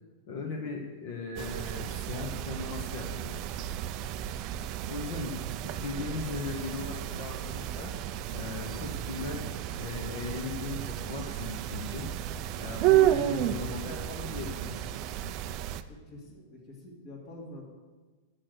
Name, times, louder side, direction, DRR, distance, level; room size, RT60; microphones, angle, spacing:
voice 1, 0.3-3.4 4.9-7.9 8.3-9.5 9.8-12.1 12.6-14.9, left 4 dB, 45° left, 0 dB, 1.3 m, -38 dB
sound 1, 1.4-15.8, right 12 dB, 30° right, 0.4 m, -32 dB
sound 2, 5.9-13.2, right 2 dB, 10° left, 1.5 m, -61 dB
voice 2, 15.9-17.7, left 1 dB, 25° left, 0 dB, 1.8 m, -46 dB
8.7 x 6.5 x 7.7 m, 1.3 s
supercardioid pair, 180°, 0 cm